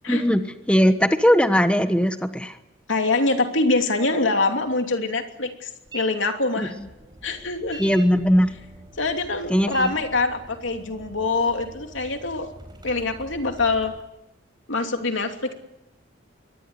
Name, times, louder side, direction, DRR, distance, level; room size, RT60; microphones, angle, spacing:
voice 1, 0.1-0.4 0.7-2.6 6.6-6.8 7.8-8.5 9.5-9.9, equal, 5° left, 9 dB, 1.2 m, -19 dB
voice 2, 2.9-6.7 7.2-7.8 9.0-12.5 12.8-13.9 14.7-15.5, left 3 dB, 80° left, 5 dB, 2.9 m, -24 dB
sound 1, 5.9-6.1 6.4-14.0, right 1 dB, 20° right, 4.7 m, -44 dB
23.5 x 19.5 x 9.9 m, 0.90 s
head